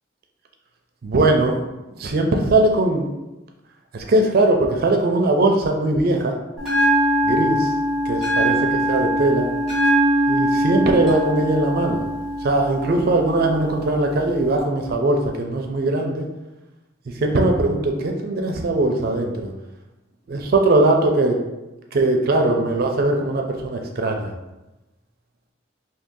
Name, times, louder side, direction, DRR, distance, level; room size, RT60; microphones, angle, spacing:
voice 1, 1.0-1.6 2.0-3.1 3.9-6.3 7.2-7.7 8.1-9.5 10.3-12.0 12.4-16.3 17.2-19.5 20.3-21.4 21.9-24.3, right 2 dB, 50° right, 3 dB, 0.4 m, -20 dB
Bell, 6.6-14.6, right 1 dB, ahead, 1.2 m, -22 dB
2.7 x 2.6 x 3.7 m, 1.0 s
head